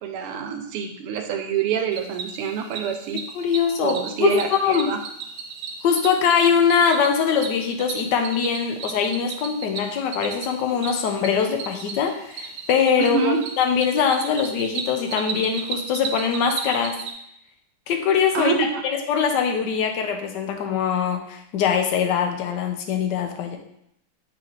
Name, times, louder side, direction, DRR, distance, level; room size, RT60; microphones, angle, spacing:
voice 1, 0.0-3.2 3.8-5.0 13.0-13.4 18.3-18.8, right 7 dB, 90° right, 5 dB, 1.6 m, -26 dB
Cricket, 1.9-17.1, right 5 dB, 75° right, 1.0 m, -35 dB
voice 2, 3.3-4.9 5.8-17.0 17.9-18.5 18.8-23.6, left 7 dB, 65° left, 4 dB, 1.2 m, -22 dB
7.4 x 3.3 x 4.0 m, 0.75 s
omnidirectional pair, 2.4 m